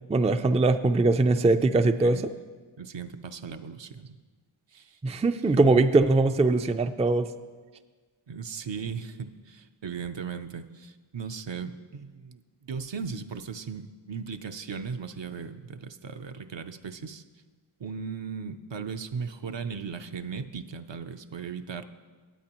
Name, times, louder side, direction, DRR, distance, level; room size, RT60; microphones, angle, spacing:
voice 1, 0.1-2.2 5.0-7.3, right 3 dB, 15° right, 9 dB, 0.3 m, -21 dB
voice 2, 1.8-2.2 2.8-4.2 4.7-5.1 8.3-17.2 17.8-21.8, right 6 dB, 60° right, 9 dB, 0.6 m, -37 dB
18.5 x 8.5 x 3.0 m, 1.4 s
wide cardioid pair, 50°, 50 cm